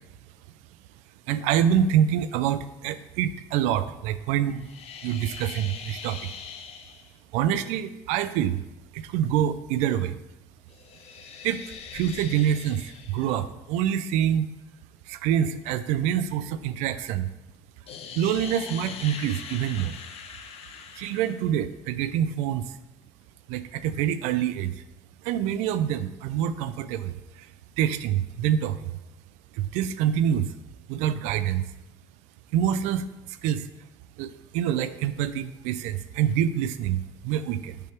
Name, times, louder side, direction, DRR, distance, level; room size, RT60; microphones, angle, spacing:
voice 1, 1.3-4.7 5.0-6.3 7.3-8.6 8.9-10.2 11.4-11.6 11.9-14.5 15.1-17.3 18.2-19.9 21.0-22.7 23.5-24.8 25.2-27.5 27.8-29.0 29.5-30.5 30.9-31.6 32.5-33.7 34.2-37.8, right 10 dB, 80° right, 13 dB, 0.4 m, -26 dB
sound 1, 4.6-7.1 10.7-13.4 17.9-21.5, left 6 dB, 60° left, 0.8 m, -42 dB
6.7 x 3.4 x 5.8 m, 0.98 s
supercardioid pair, 80°, 12 cm